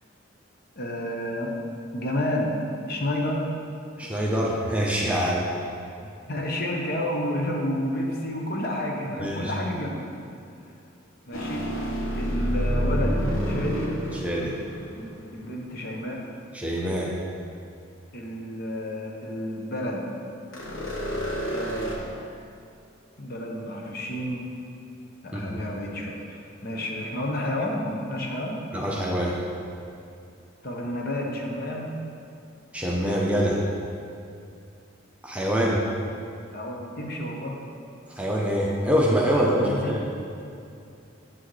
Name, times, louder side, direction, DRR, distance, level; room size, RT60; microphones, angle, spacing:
voice 1, 0.8-1.5 1.9-3.4 6.0-10.1 11.3-11.7 12.1-14.0 15.0-16.2 18.1-20.1 21.5-22.1 23.2-24.5 25.2-28.6 30.6-32.0 36.5-37.6 39.4-40.0, left 1 dB, 50° left, 0 dB, 0.8 m, -30 dB
voice 2, 4.0-5.5 9.2-9.5 14.1-14.5 16.5-17.1 25.3-25.6 28.7-29.4 32.7-33.6 35.2-35.8 38.1-40.0, equal, 5° right, -4 dB, 0.6 m, -25 dB
sound 1, 11.3-15.6 20.5-22.0, equal, 80° left, 1.1 m, -28 dB
7.5 x 6.1 x 3.1 m, 2.5 s
head